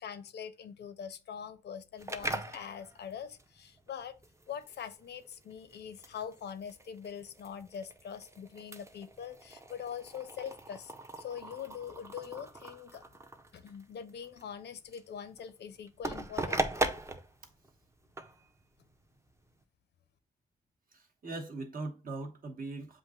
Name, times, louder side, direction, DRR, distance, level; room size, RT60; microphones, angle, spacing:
voice 1, 0.0-4.2 4.5-13.0 13.5-16.7, left 8 dB, 75° left, 0.6 m, -43 dB
sound 1, 2.0-19.6, right 2 dB, 15° right, 0.5 m, -40 dB
voice 2, 20.9-23.0, right 2 dB, 55° right, 1.1 m, -40 dB
7.5 x 2.5 x 2.4 m
cardioid pair, 75°, 18 cm